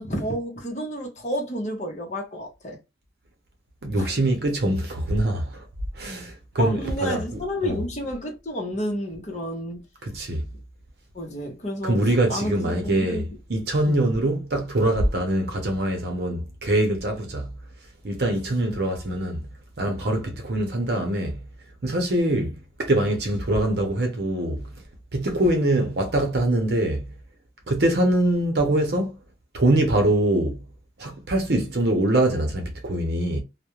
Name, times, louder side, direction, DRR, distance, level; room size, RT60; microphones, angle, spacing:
voice 1, 0.0-2.8 4.0-4.2 6.6-9.8 11.1-12.0 12.3-13.2 13.9-14.0 22.3-22.5, equal, 40° left, 0.8 m, -30 dB
voice 2, 3.8-5.7 5.9-7.8 10.0-10.5 11.8-17.5 18.0-19.5 19.8-21.4 21.8-22.5 22.8-24.7 25.1-27.1 27.7-29.2 29.5-30.6 31.0-33.4, right 1 dB, 65° right, 0.7 m, -23 dB
2.4 x 2.1 x 2.9 m
head